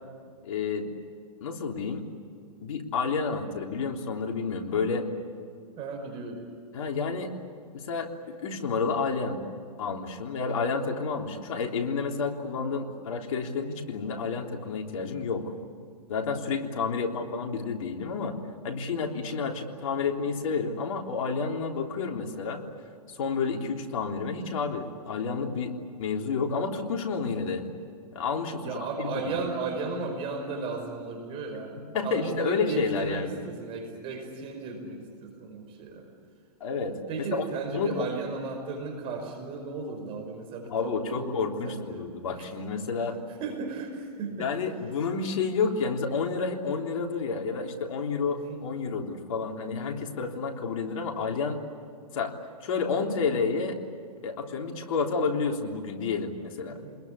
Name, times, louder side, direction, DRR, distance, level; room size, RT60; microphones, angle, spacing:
voice 1, 0.4-0.9 1.4-2.0 2.6-5.1 6.7-7.3 7.7-9.4 9.8-15.5 16.1-18.3 18.6-22.6 23.1-27.6 28.1-29.4 31.9-33.4 36.6-37.0 37.3-37.4 37.7-38.1 40.7-43.2 44.4-51.6 52.1-52.3 52.6-53.8 54.2-56.8, left 5 dB, 55° left, 2 dB, 3.5 m, -30 dB
voice 2, 5.8-6.4 14.1-14.3 22.1-22.3 24.3-24.5 27.2-27.4 28.5-31.8 32.0-36.1 37.1-42.1 42.4-42.5 43.4-44.5 48.3-48.7 56.7-57.0, right 4 dB, 30° right, 4 dB, 5.3 m, -35 dB
27.5 x 21.5 x 8.4 m, 2.3 s
hypercardioid pair, 135°, 20 cm